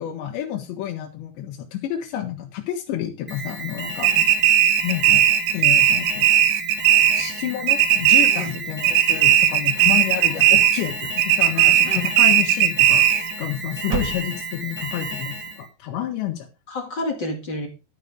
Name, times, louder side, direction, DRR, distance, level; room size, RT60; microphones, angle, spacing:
voice 1, 0.0-4.1 4.8-5.3 5.5-6.3 7.1-13.1 13.4-16.5, left 11 dB, 80° left, 2 dB, 3.5 m, -29 dB
Alarm, 3.3-15.7, right 2 dB, 5° right, 1.2 m, -32 dB
sound 1, 4.0-7.4 7.7-8.6 8.8-10.9 11.2-13.3, right 11 dB, 80° right, 3.2 m, -17 dB
sound 2, 9.7-10.9 11.3-12.0 13.0-13.5 13.8-14.7, right 7 dB, 60° right, 2.6 m, -34 dB
voice 2, 11.5-12.1 16.7-17.7, left 1 dB, 45° left, 3 dB, 1.5 m, -31 dB
12.5 x 7.0 x 5.0 m, 0.29 s
omnidirectional pair, 5.0 m